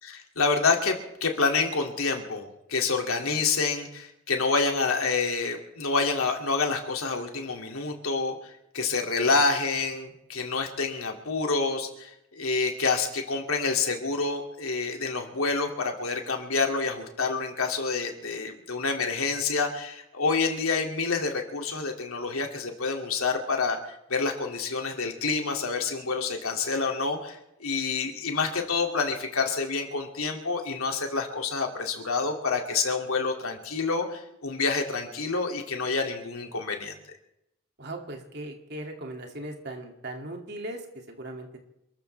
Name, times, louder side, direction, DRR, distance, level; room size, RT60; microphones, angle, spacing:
voice 1, 0.0-37.0, left 4 dB, 80° left, 2 dB, 2.6 m, -28 dB
voice 2, 37.8-41.6, right 1 dB, 50° right, 2 dB, 2.6 m, -38 dB
28.0 x 14.0 x 3.4 m, 0.84 s
head